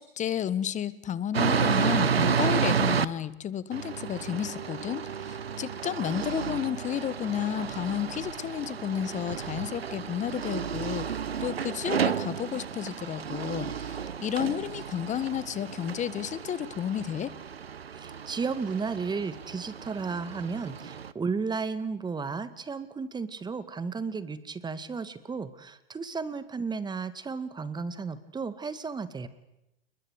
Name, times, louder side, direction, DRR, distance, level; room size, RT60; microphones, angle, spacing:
voice 1, 0.0-11.1 11.4-17.3, left 9 dB, 25° left, 17 dB, 1.4 m, -32 dB
sound 1, 1.3-3.1 3.7-21.1, right 7 dB, 85° right, 1.1 m, -32 dB
voice 2, 17.9-29.3, right 5 dB, 15° right, 13 dB, 2.0 m, -34 dB
30.0 x 21.0 x 8.2 m, 0.88 s
hypercardioid pair, 105°, 30 cm